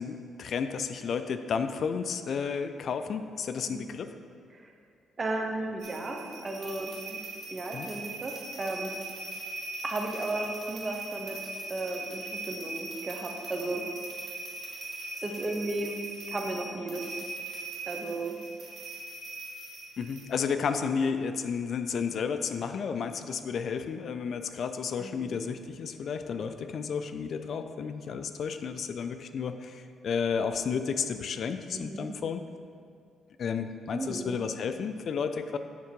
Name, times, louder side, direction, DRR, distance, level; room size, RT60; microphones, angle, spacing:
voice 1, 0.0-4.1 7.7-7.9 20.0-32.4 33.4-35.6, left 6 dB, 60° left, 9 dB, 0.3 m, -32 dB
voice 2, 5.2-7.2 7.5-8.9 9.8-13.8 15.2-16.0 16.3-17.1 17.9-18.4 25.0-25.3 31.7-32.1 33.9-34.4, right 2 dB, 30° right, 2 dB, 0.9 m, -35 dB
sound 1, 5.8-20.2, right 2 dB, 65° right, 1.4 m, -40 dB
9.3 x 3.7 x 4.6 m, 2.3 s
cardioid pair, 90°, 0 cm